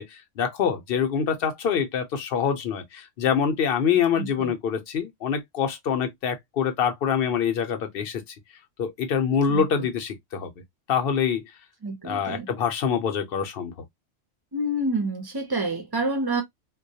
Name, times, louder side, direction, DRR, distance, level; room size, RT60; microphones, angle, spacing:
voice 1, 0.0-8.2 8.8-10.5 10.9-11.4 12.0-13.7, left 7 dB, 60° left, 0.8 m, -25 dB
voice 2, 4.2-4.5 9.5-9.9 11.8-12.5 14.5-16.4, right 1 dB, 30° right, 0.5 m, -28 dB
2.2 x 2.2 x 2.6 m
omnidirectional pair, 1.2 m